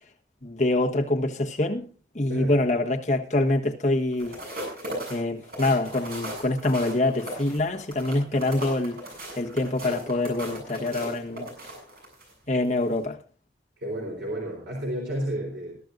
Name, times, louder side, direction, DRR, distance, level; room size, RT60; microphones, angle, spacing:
voice 1, 0.4-1.8 2.1-4.4 5.1-9.0 9.4-11.5 12.5-13.2, left 2 dB, 40° left, 1.4 m, -25 dB
voice 2, 2.3-2.7 13.8-15.7, equal, 80° right, 3.8 m, -31 dB
sound 1, 4.1-12.3 12.8-13.0, right 1 dB, 55° right, 7.4 m, -37 dB
22.0 x 12.0 x 2.6 m
head